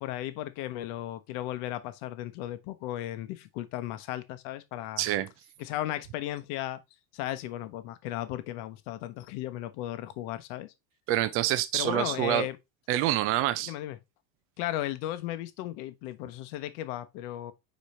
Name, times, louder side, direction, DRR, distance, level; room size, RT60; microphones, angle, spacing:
voice 1, 0.0-5.0 5.6-6.8 7.1-10.7 11.7-12.6 13.6-14.0 14.6-17.5, left 14 dB, 60° left, 1.0 m, -35 dB
voice 2, 5.0-5.3 11.1-12.5 12.9-13.7, right 13 dB, 30° right, 0.4 m, -26 dB
5.2 x 4.5 x 4.1 m
cardioid pair, 160°, 50 cm